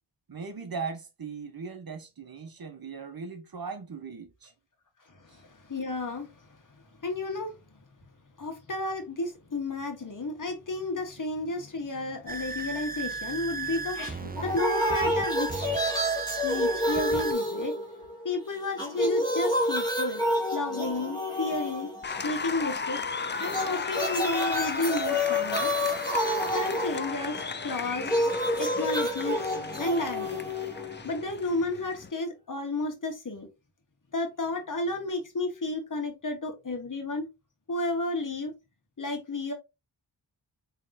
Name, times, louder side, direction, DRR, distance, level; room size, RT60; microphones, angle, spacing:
voice 1, 0.3-4.5 5.3-5.4, right 5 dB, 50° right, 1.1 m, -39 dB
voice 2, 5.1-7.6 8.4-15.7 16.4-17.7 18.2-20.2 20.5-21.9 22.2-23.0 23.4-25.7 26.5-28.1 28.6-29.4 29.8-30.4 31.0-33.5 34.1-37.3 37.7-38.5 39.0-39.5, left 2 dB, 40° left, 1.6 m, -32 dB
sound 1, 12.3-17.3, right 4 dB, 20° right, 0.7 m, -35 dB
sound 2, 14.4-18.3 18.6-22.4 23.4-31.4, equal, 10° left, 2.0 m, -29 dB
Applause, 22.0-32.1, left 5 dB, 25° left, 0.5 m, -35 dB
3.9 x 3.3 x 2.7 m
cardioid pair, 45°, 45 cm